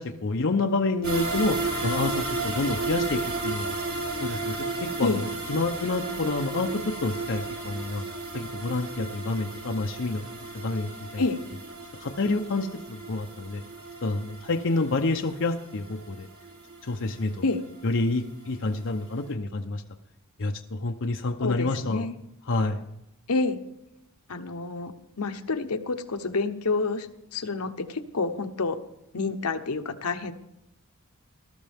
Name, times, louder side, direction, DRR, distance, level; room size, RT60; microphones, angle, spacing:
voice 1, 0.0-3.7 4.2-8.0 8.3-10.3 10.5-11.2 12.0-13.6 14.0-16.3 16.8-17.4 17.8-19.8 20.4-22.0 22.5-22.8, left 2 dB, 60° left, 3 dB, 0.8 m, -28 dB
sound 1, 1.0-18.1 18.4-18.5 19.0-19.1, right 3 dB, 85° right, 5.4 m, -34 dB
voice 2, 21.4-22.2 23.3-23.6 24.3-28.8 29.1-30.3, left 3 dB, 80° left, 8 dB, 1.0 m, -28 dB
19.5 x 12.5 x 3.6 m, 0.86 s
head